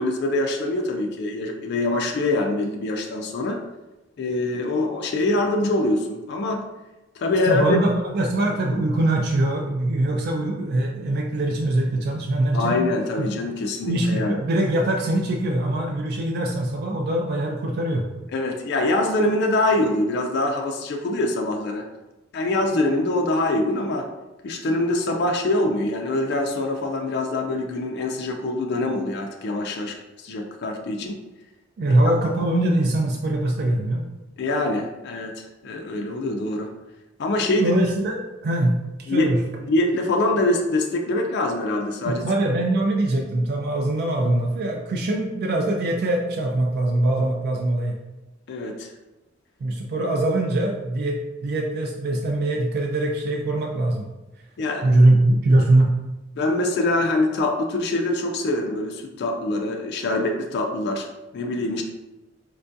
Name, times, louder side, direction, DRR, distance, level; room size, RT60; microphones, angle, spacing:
voice 1, 0.0-3.6 4.2-6.7 7.2-7.6 12.5-14.4 18.3-21.9 22.3-24.1 24.4-31.2 31.9-32.0 34.4-36.7 37.2-37.8 39.1-39.3 39.6-42.2 48.5-48.9 54.6-54.9 56.4-61.8, left 2 dB, 60° left, 2 dB, 0.4 m, -24 dB
voice 2, 7.4-12.8 13.2-13.3 13.9-18.0 31.8-34.0 37.6-39.4 42.1-48.0 49.6-54.1 54.8-55.9, right 1 dB, 55° right, 1 dB, 0.3 m, -22 dB
4.3 x 2.3 x 2.6 m, 1.1 s
head